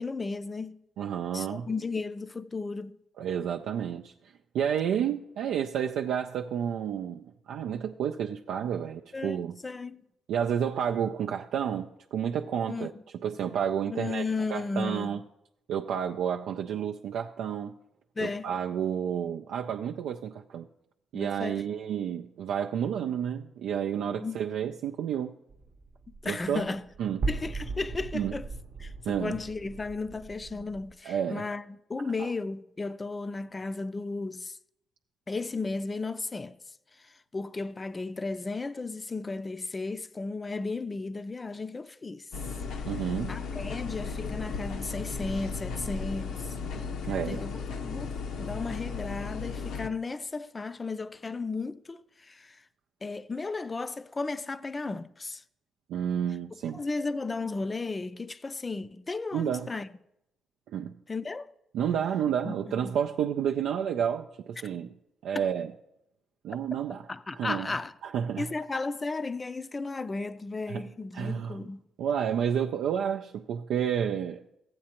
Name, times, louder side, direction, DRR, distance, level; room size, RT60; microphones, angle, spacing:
voice 1, 0.0-0.8 1.3-3.0 9.1-10.0 12.7-12.9 13.9-15.2 18.2-18.5 21.1-21.6 24.2-24.4 26.2-26.8 27.3-28.5 28.8-34.6 35.3-36.5 37.0-42.3 43.3-46.5 47.3-52.6 53.0-55.4 56.7-59.9 61.1-61.5 62.5-63.0 65.3-65.5 67.1-67.9 68.4-71.8, left 3 dB, 25° left, 0.4 m, -34 dB
voice 2, 1.0-1.7 3.2-9.6 10.3-12.9 13.2-14.2 14.5-15.2 15.7-17.7 18.2-20.7 21.1-25.4 26.2-26.7 27.0-27.3 28.1-28.4 29.1-29.4 31.0-31.4 32.2-32.3 42.9-43.4 47.0-47.5 55.9-56.8 59.3-59.7 60.7-60.9 61.7-64.9 65.2-65.7 66.4-67.1 67.3-67.7 68.0-68.5 70.7-70.8 71.1-71.6 72.0-74.4, right 8 dB, 80° right, 0.3 m, -30 dB
sound 1, 25.5-30.9, right 3 dB, 55° right, 0.8 m, -38 dB
sound 2, 42.3-49.9, left 5 dB, 75° left, 0.6 m, -35 dB
14.5 x 8.6 x 2.9 m
cardioid pair, 90°, 0 cm